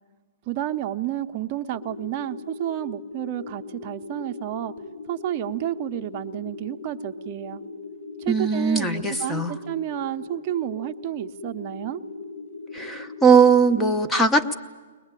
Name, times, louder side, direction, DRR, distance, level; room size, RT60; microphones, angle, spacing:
voice 1, 0.5-4.7 5.1-7.6 8.2-12.0, right 12 dB, 30° right, 5 dB, 0.7 m, -30 dB
sound 1, 1.7-13.9, left 3 dB, 75° left, 6.1 m, -39 dB
voice 2, 8.3-9.5 12.7-14.5, right 4 dB, 5° left, 7 dB, 0.8 m, -19 dB
22.0 x 20.5 x 9.0 m, 1.4 s
hypercardioid pair, 160°, 0 cm